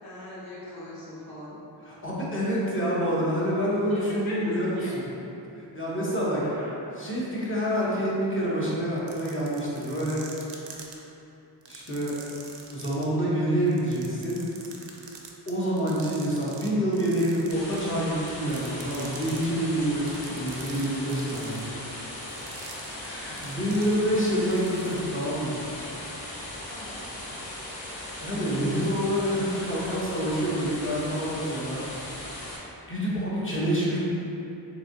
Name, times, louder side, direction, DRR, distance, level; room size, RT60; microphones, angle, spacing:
voice 1, 0.0-2.0 3.9-4.9 6.4-6.8 20.1-20.4 26.7-27.0, left 1 dB, 55° left, -8 dB, 1.1 m, -40 dB
voice 2, 1.8-5.0 5.5-6.4 7.0-10.2 11.7-12.2 12.7-14.4 15.5-21.9 22.9-25.6 28.2-31.8 32.9-34.0, equal, 30° left, -7 dB, 0.9 m, -27 dB
sound 1, 9.0-10.9 11.6-13.0 13.7-16.7 16.9-17.9 18.3-19.4 20.0-24.2 24.5-25.0, right 6 dB, 75° right, 0.5 m, -45 dB
sound 2, 17.5-32.6, left 1 dB, 85° left, 0.8 m, -38 dB
3.6 x 3.2 x 2.6 m, 2.9 s
wide cardioid pair, 80°, 43 cm